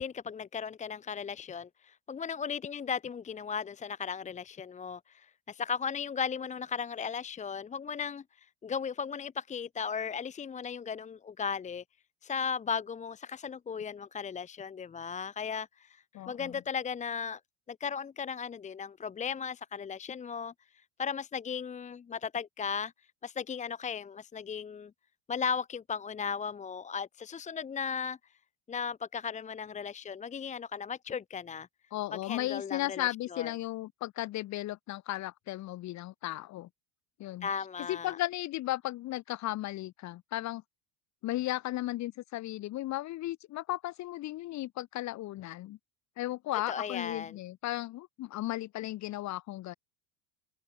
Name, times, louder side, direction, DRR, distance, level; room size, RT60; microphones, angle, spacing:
voice 1, 0.0-11.8 12.2-17.4 17.7-20.5 21.0-22.9 23.2-24.9 25.3-28.2 28.7-31.7 32.1-33.5 37.4-38.2 46.7-47.3, left 6 dB, 15° left, 1.5 m, -36 dB
voice 2, 16.1-16.6 31.9-36.7 37.2-37.5 37.9-40.6 41.2-45.8 46.2-49.7, left 16 dB, 40° left, 4.2 m, -35 dB
cardioid pair, 165°, 41 cm